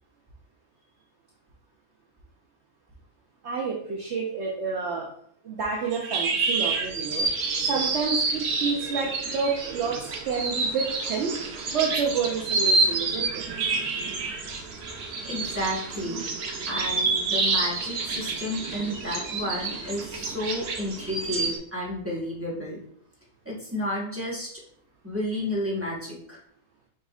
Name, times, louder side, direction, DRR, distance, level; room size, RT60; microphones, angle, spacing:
voice 1, 3.4-5.1 5.4-7.3 7.6-13.4, right 5 dB, 60° right, -1 dB, 0.8 m, -29 dB
sound 1, 5.9-21.6, right 3 dB, 85° right, 1.3 m, -28 dB
voice 2, 15.2-16.2 16.7-22.8 23.4-24.5 25.0-26.4, left 1 dB, 10° right, -5 dB, 1.0 m, -31 dB
5.2 x 4.2 x 2.3 m, 0.66 s
omnidirectional pair, 1.6 m